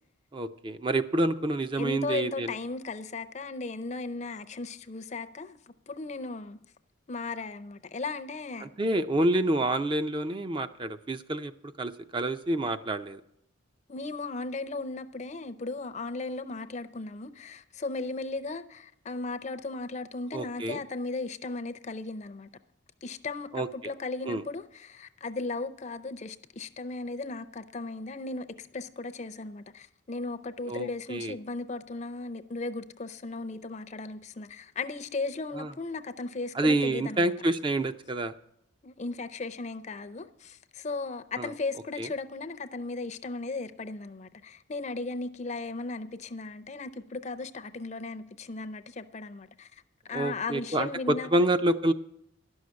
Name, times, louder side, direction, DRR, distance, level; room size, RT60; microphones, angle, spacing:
voice 1, 0.3-2.5 8.6-11.5 11.8-13.2 20.3-20.8 23.5-23.7 24.3-24.4 30.7-31.4 35.5-35.7 36.5-38.3 41.4-41.5 42.0-42.1 50.1-51.9, right 1 dB, 25° right, 0.4 m, -28 dB
voice 2, 1.8-5.6 5.9-6.6 7.1-8.7 13.9-22.5 23.0-37.3 38.8-49.7 50.1-51.3, left 3 dB, 35° left, 0.5 m, -36 dB
11.5 x 6.4 x 9.5 m
head